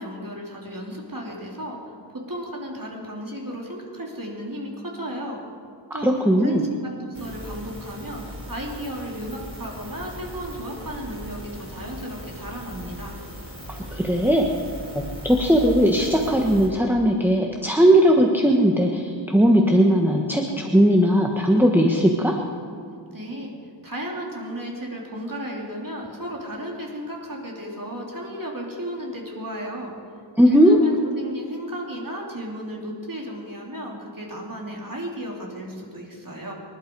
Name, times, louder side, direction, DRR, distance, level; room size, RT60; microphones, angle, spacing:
voice 1, 0.0-5.4 5.9-8.2 8.5-13.2 23.1-23.5 23.8-29.9 30.4-36.5, equal, 45° right, -2 dB, 3.3 m, -34 dB
voice 2, 6.0-6.6 13.7-14.4 14.9-22.4 30.4-30.8, equal, 5° right, 1 dB, 1.3 m, -18 dB
sound 1, 7.1-16.7, equal, 30° right, 4.6 m, -38 dB
25.5 x 11.5 x 4.7 m, 2.4 s
wide cardioid pair, 50°, 44 cm